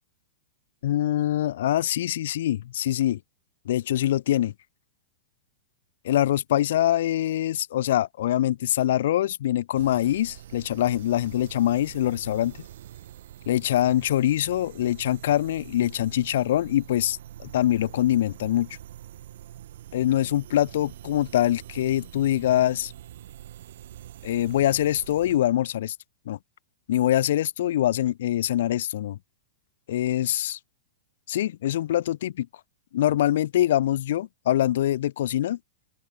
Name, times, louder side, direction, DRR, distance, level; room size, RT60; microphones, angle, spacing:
voice 1, 0.8-3.2 3.7-4.5 6.0-12.5 13.5-18.7 19.9-22.9 24.2-26.0 26.3-26.4 26.9-29.2 29.9-30.6 31.3-32.5 32.9-35.6, left 12 dB, 55° left, 0.7 m, -24 dB
sound 1, 9.7-25.4, right 12 dB, 55° right, 1.5 m, -45 dB
open air
supercardioid pair, 175°, 0 cm